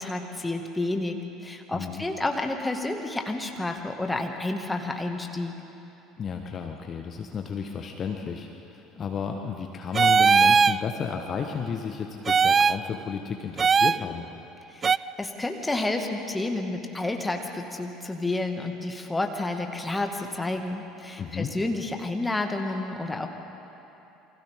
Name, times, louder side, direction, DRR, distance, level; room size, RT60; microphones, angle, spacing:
voice 1, 0.0-5.6 14.7-23.3, left 2 dB, 10° left, 4 dB, 2.1 m, -30 dB
voice 2, 1.7-2.0 6.2-14.3 21.2-21.5, left 6 dB, 35° left, 4 dB, 1.4 m, -33 dB
sound 1, 9.9-10.8 12.3-12.8 13.6-14.0 14.8-15.0, right 6 dB, 30° right, 0.4 m, -19 dB
29.0 x 24.5 x 3.8 m, 3.0 s
figure-of-eight pair, 60°, 0 cm